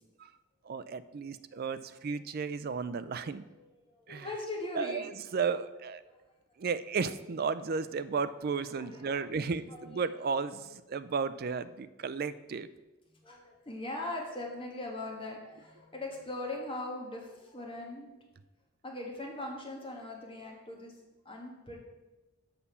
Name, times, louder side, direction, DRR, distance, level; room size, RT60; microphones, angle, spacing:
voice 1, 0.6-3.4 4.1-4.3 4.7-6.0 6.6-12.7, right 5 dB, 45° right, 14 dB, 0.4 m, -34 dB
voice 2, 4.0-5.1 6.1-6.2 8.7-9.3 9.7-10.3 13.2-18.1 18.8-20.9 21.2-21.8, left 2 dB, 25° left, -1 dB, 1.5 m, -40 dB
6.8 x 5.6 x 6.9 m, 1.1 s
head